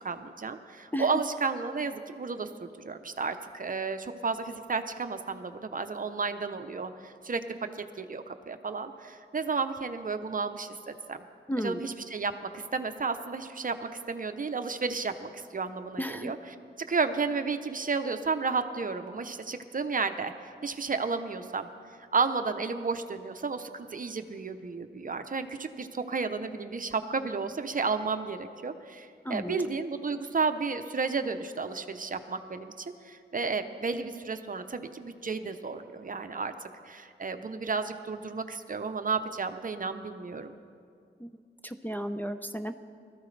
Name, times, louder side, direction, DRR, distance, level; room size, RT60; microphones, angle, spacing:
voice 1, 0.0-7.4 8.0-11.2 11.6-16.6 16.9-20.3 20.6-21.7 22.1-36.5 36.8-40.6, right 4 dB, 45° right, 9 dB, 0.7 m, -32 dB
voice 2, 11.5-11.8 16.0-16.3 29.2-29.7 41.2-41.3 41.6-42.7, equal, 10° left, 6 dB, 0.5 m, -33 dB
20.0 x 13.5 x 3.3 m, 2.3 s
wide cardioid pair, 80°, 20 cm